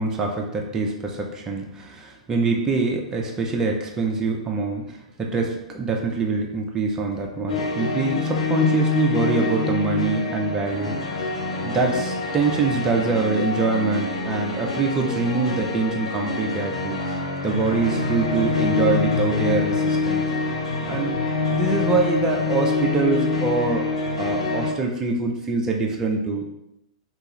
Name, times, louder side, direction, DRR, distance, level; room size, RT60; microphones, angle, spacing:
voice 1, 0.0-10.9 11.6-17.2 17.4-20.3 20.9-21.2 21.5-23.9 24.2-26.5, right 3 dB, 15° right, 0 dB, 0.4 m, -24 dB
sound 1, 7.5-24.7, left 3 dB, 65° left, 0.5 m, -25 dB
2.7 x 2.2 x 3.1 m, 0.86 s
figure-of-eight pair, 105°, 4 cm